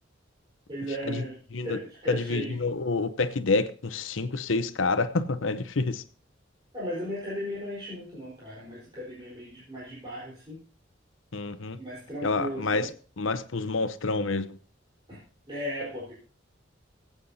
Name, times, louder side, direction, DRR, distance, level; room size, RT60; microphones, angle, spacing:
voice 1, 0.7-1.4 1.6-2.6 6.7-10.6 11.8-12.9 15.1-15.2 15.5-16.1, equal, 25° right, 4.2 m, -36 dB
voice 2, 2.1-6.0 11.3-11.8 12.2-12.9 13.2-14.6, left 3 dB, 85° left, 0.8 m, -28 dB
23.5 x 8.3 x 2.8 m
head